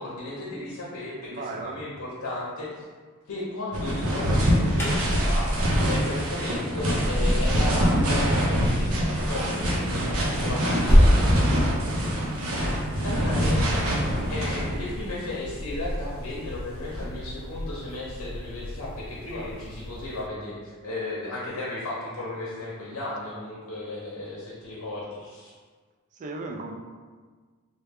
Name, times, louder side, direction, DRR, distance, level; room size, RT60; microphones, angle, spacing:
voice 1, 0.0-2.8 3.3-5.5 5.9-11.2 13.0-25.5, left 2 dB, 80° left, -5 dB, 0.7 m, -35 dB
voice 2, 1.3-1.8 11.0-12.0 26.1-26.7, right 3 dB, 35° right, 3 dB, 0.3 m, -37 dB
sound 1, 3.7-15.0 15.6-17.1, equal, 75° right, 0.7 m, -25 dB
Alarm, 4.1-11.2, equal, 10° left, 0.7 m, -26 dB
sound 2, 9.5-20.3, left 1 dB, 65° left, 0.3 m, -40 dB
3.2 x 2.2 x 3.4 m, 1.5 s
head